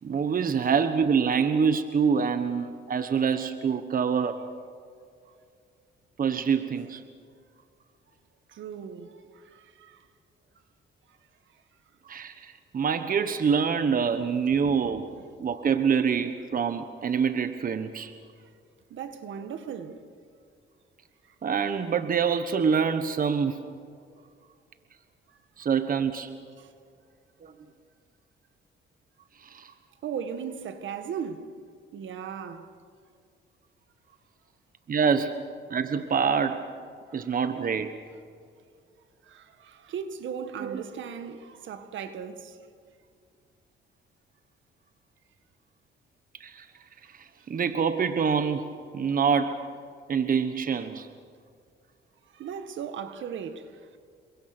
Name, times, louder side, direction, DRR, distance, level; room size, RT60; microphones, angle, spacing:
voice 1, 0.0-4.5 6.2-7.0 12.0-15.1 15.4-18.1 21.4-23.6 25.6-26.4 27.4-27.5 29.4-29.7 34.9-35.4 35.7-36.6 37.1-38.0 40.6-40.8 46.4-46.7 47.1-48.6 48.9-49.7 50.1-51.1, right 6 dB, 45° right, 1.3 m, -26 dB
voice 2, 8.5-9.1 9.5-10.0 18.9-20.0 30.0-31.4 31.9-32.7 37.2-37.3 39.3-42.6 52.3-53.7, right 7 dB, 75° right, 1.8 m, -37 dB
28.5 x 23.5 x 6.2 m
cardioid pair, 90°, 20 cm